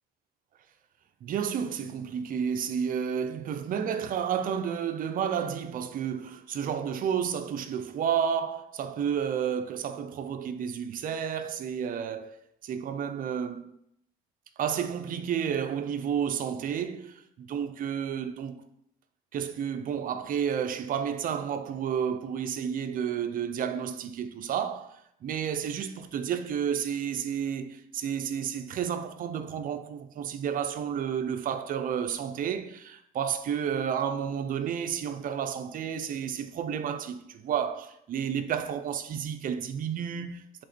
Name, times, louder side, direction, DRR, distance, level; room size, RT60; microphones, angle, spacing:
voice 1, 1.2-12.4 12.6-13.7 14.6-18.6 19.3-40.6, right 8 dB, 55° right, 0.6 m, -31 dB
7.8 x 3.7 x 4.3 m
cardioid pair, 110°, 17 cm